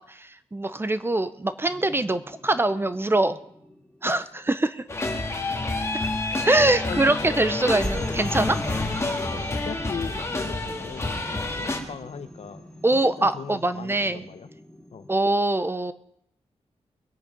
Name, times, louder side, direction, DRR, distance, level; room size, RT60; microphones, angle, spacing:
voice 1, 0.1-3.4 4.0-4.8 6.4-8.6 12.8-14.3 15.1-15.9, right 2 dB, 20° right, 13 dB, 0.6 m, -23 dB
sound 1, 1.6-4.7 7.8-15.1, equal, 5° left, 2.9 m, -41 dB
sound 2, 4.9-11.8, left 2 dB, 25° left, 1.8 m, -28 dB
voice 2, 6.3-7.5 7.8-8.0 9.3-14.5 14.9-15.1, left 6 dB, 75° left, 10 dB, 1.0 m, -39 dB
22.0 x 8.7 x 5.2 m, 0.74 s
wide cardioid pair, 115°, 11 cm